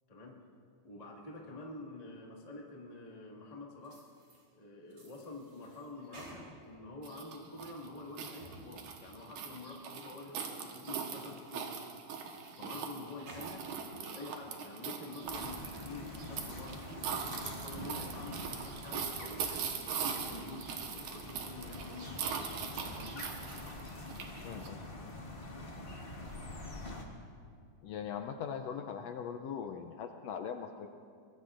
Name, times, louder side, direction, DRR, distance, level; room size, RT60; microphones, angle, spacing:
voice 1, 0.1-0.4 0.8-4.0 4.5-11.7 12.6-16.9 17.4-22.5 22.8-23.2, left 2 dB, 20° left, -2 dB, 1.1 m, -48 dB
sound 1, 3.8-4.5 4.9-6.8 7.2-7.8 8.2-8.7 9.1-9.2 9.8-9.9 10.5-10.6 11.0-11.8 12.1-13.5 14.0-14.6 15.1-15.5, right 1 dB, 55° right, 4.7 m, -55 dB
sound 2, 7.0-24.7, right 6 dB, 80° right, 2.6 m, -41 dB
sound 3, 15.3-27.0, left 2 dB, 55° left, 0.6 m, -46 dB
voice 2, 24.4-25.1 27.8-30.9, left 7 dB, 80° left, 6 dB, 1.5 m, -41 dB
24.0 x 21.5 x 2.5 m, 2.3 s
omnidirectional pair, 3.5 m